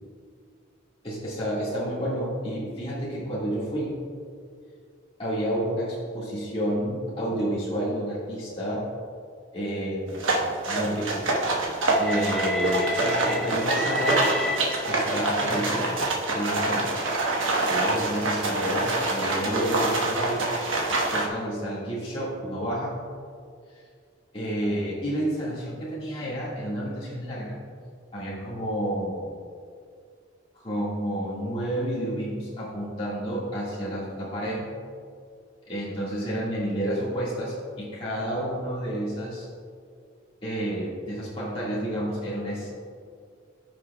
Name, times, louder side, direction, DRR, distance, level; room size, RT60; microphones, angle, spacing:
voice 1, 1.0-4.0 5.2-8.9 9.5-10.3 10.7-11.3 12.0-14.3 14.8-16.9 17.6-20.5 21.1-23.0 24.3-27.6 28.1-29.2 30.5-34.7 35.7-39.5 40.4-42.7, equal, 30° left, -8 dB, 1.9 m, -30 dB
sound 1, 10.1-21.3, right 2 dB, 85° right, 1.2 m, -26 dB
Train, 11.9-15.3 16.1-21.4, left 1 dB, ahead, 0.3 m, -34 dB
14.5 x 6.3 x 2.3 m, 2.2 s
head